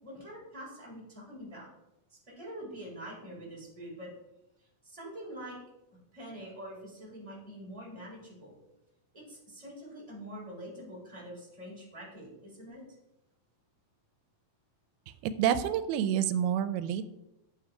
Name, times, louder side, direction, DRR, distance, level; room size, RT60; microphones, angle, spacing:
voice 1, 0.0-1.7 2.1-4.1 4.8-5.6 6.1-8.5 9.1-12.8, equal, 10° right, -5 dB, 3.8 m, -45 dB
voice 2, 15.2-17.0, right 9 dB, 90° right, 12 dB, 2.5 m, -28 dB
9.2 x 7.3 x 4.8 m, 0.90 s
omnidirectional pair, 4.4 m